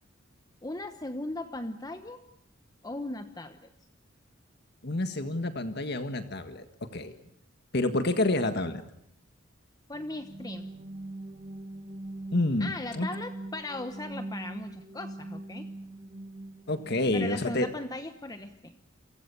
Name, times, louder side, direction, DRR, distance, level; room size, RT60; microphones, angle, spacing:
voice 1, 0.6-2.2 2.8-3.6 9.9-10.7 12.6-15.7 17.1-18.8, left 2 dB, 20° left, 9 dB, 1.1 m, -38 dB
voice 2, 4.8-6.6 6.9-7.1 7.7-8.8 12.3-13.1 16.7-17.7, left 2 dB, 55° left, 9 dB, 1.7 m, -28 dB
sound 1, 9.9-17.7, right 1 dB, 30° right, 3.2 m, -42 dB
29.5 x 24.0 x 7.1 m, 0.72 s
head